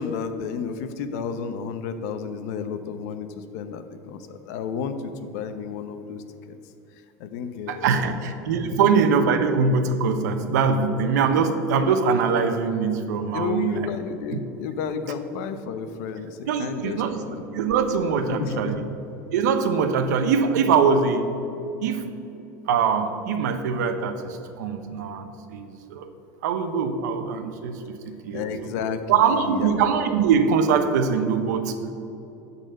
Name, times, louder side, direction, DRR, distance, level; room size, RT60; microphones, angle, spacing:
voice 1, 0.0-6.6 7.2-8.1 8.7-8.9 13.3-17.3 18.3-18.7 28.3-29.8, left 5 dB, 70° left, 9 dB, 0.9 m, -32 dB
voice 2, 7.7-13.8 14.3-14.4 16.5-17.2 17.5-18.8 19.3-21.3 21.8-22.1 22.7-26.1 26.4-28.7 29.1-31.7, right 6 dB, 85° right, 8 dB, 1.0 m, -23 dB
12.0 x 4.2 x 7.7 m, 2.9 s
supercardioid pair, 120°, 9 cm